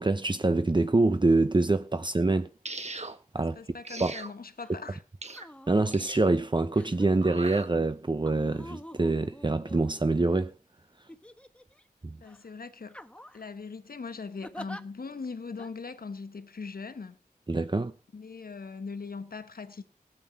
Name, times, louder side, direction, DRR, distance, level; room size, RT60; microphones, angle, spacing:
voice 1, 0.0-2.5 3.0-3.1 3.3-3.6 4.0-4.1 5.7-10.5 12.0-12.2 17.5-17.9, right 2 dB, 30° right, 0.8 m, -25 dB
sound 1, 2.6-3.2 3.8-4.3 5.2-5.5 5.9-6.3 7.2-7.7, right 3 dB, 50° right, 1.6 m, -39 dB
voice 2, 3.4-5.0 12.2-13.0 13.3-17.2 18.1-19.8, left 4 dB, 85° left, 1.4 m, -40 dB
sound 2, 4.6-4.8 5.3-5.9 6.7-7.3 8.3-10.3 11.1-11.8 12.2-12.4 12.9-13.5 14.4-14.8 15.6-15.7, left 1 dB, 10° left, 1.3 m, -46 dB
16.5 x 8.9 x 5.9 m
wide cardioid pair, 65°, 15 cm